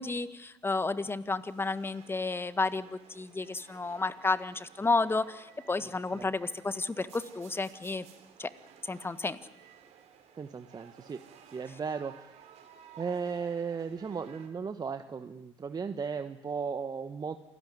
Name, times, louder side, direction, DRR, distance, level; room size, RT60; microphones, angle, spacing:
voice 1, 0.0-8.0 8.4-8.5 8.9-9.4, left 3 dB, 15° left, 13 dB, 1.6 m, -31 dB
sound 1, 1.2-14.5, right 8 dB, 55° right, 4.3 m, -56 dB
voice 2, 5.8-6.3 10.4-11.2 11.5-12.3 13.0-17.3, right 5 dB, 30° right, 9 dB, 1.3 m, -36 dB
28.0 x 18.0 x 9.6 m, 0.94 s
hypercardioid pair, 70°, 14 cm